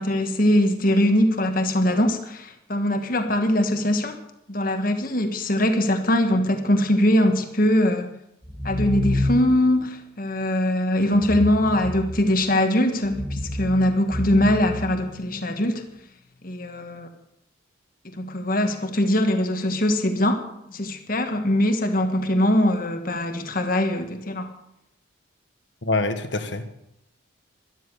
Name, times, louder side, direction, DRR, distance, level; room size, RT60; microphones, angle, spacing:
voice 1, 0.0-4.2 4.5-8.1 8.6-15.8 16.4-17.1 18.0-20.4 20.7-24.5, left 1 dB, 45° left, 6 dB, 1.6 m, -22 dB
sound 1, 8.4-9.7 11.1-12.5 13.0-15.5, left 1 dB, 15° left, 2.2 m, -29 dB
voice 2, 25.8-26.6, left 2 dB, 60° left, 9 dB, 1.5 m, -25 dB
13.0 x 12.0 x 6.9 m, 0.79 s
head